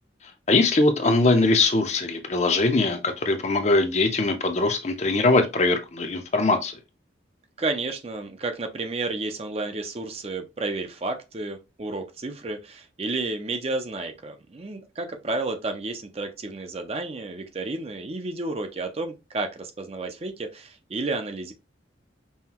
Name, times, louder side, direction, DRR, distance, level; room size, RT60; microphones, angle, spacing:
voice 1, 0.5-6.8, left 2 dB, 35° left, 0.6 m, -21 dB
voice 2, 7.6-21.5, right 3 dB, 30° right, 0.5 m, -31 dB
5.5 x 2.2 x 2.9 m
head